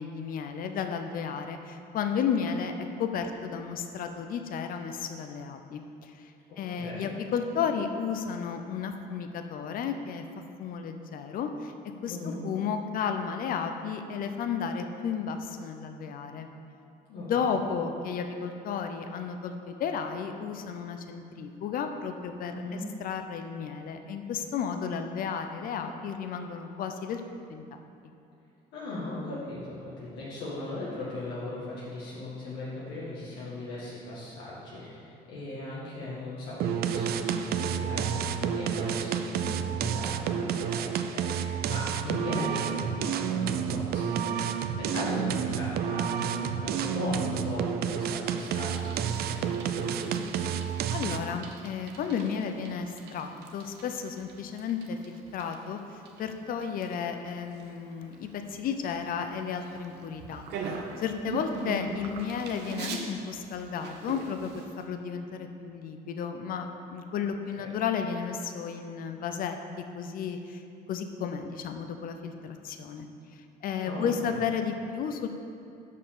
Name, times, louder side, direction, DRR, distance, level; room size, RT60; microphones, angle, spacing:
voice 1, 0.0-2.7 3.0-6.3 6.6-10.2 10.6-11.7 12.0-16.5 17.2-27.2 27.5-27.6 50.7-55.8 56.2-70.6 70.9-73.1 73.6-75.3, left 6 dB, 60° left, 6 dB, 0.6 m, -33 dB
voice 2, 6.8-7.1 12.1-12.4 17.1-17.3 22.5-22.8 28.7-50.2 67.5-67.6 73.8-74.0, left 2 dB, 85° left, -9 dB, 1.9 m, -37 dB
sound 1, 36.6-51.4, right 8 dB, 65° right, 0.5 m, -30 dB
Bicycle, 48.4-64.9, right 4 dB, 80° right, 0.9 m, -43 dB
6.6 x 5.6 x 6.8 m, 2.6 s
cardioid pair, 110°, 17 cm